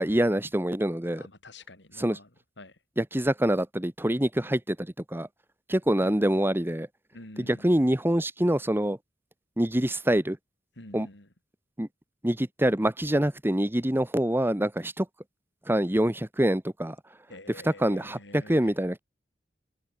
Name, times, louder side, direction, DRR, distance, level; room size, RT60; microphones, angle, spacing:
voice 1, 0.0-1.2 2.0-2.2 3.0-5.3 5.7-6.9 7.4-9.0 9.6-10.4 10.9-11.1 11.8-11.9 12.2-15.1 15.7-17.0 17.6-19.0, right 1 dB, 10° right, 1.4 m, -25 dB
voice 2, 1.2-2.3 2.6-2.7 6.0-6.3 7.1-7.9 10.8-11.3 17.3-18.7, left 2 dB, 75° left, 5.5 m, -47 dB
head